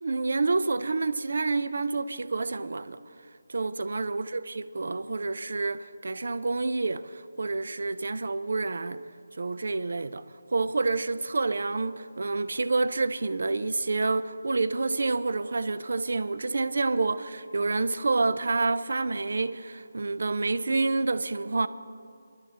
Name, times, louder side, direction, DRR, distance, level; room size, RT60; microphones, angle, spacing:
voice 1, 0.0-3.0 3.5-9.0 9.4-10.2 10.5-21.7, right 3 dB, 55° right, 0.4 m, -28 dB
26.5 x 12.0 x 2.9 m
figure-of-eight pair, 175°, 0 cm